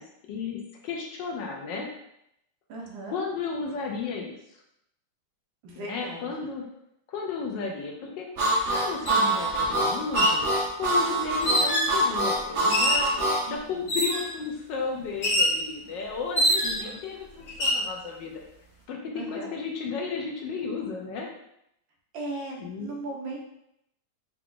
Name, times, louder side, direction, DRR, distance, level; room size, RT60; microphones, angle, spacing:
voice 1, 0.3-1.9 3.1-4.3 5.8-6.6 7.1-8.3 8.7-10.5 10.8-13.1 13.5-18.4 18.9-21.3 22.6-22.9, left 5 dB, 70° left, 0 dB, 1.3 m, -33 dB
voice 2, 2.7-3.2 5.6-6.3 13.5-13.9 16.6-17.0 19.1-19.5 22.1-23.4, right 2 dB, 75° right, -1 dB, 1.6 m, -38 dB
Harmonica, 8.4-13.4, right 1 dB, 55° right, 0.8 m, -25 dB
sound 1, 9.1-9.2 10.0-10.4 11.4-12.0 12.7-13.1 13.9-14.3 15.2-15.6 16.4-16.9 17.5-17.8, equal, 45° left, 1.0 m, -24 dB
4.7 x 2.4 x 3.7 m, 0.78 s
omnidirectional pair, 2.2 m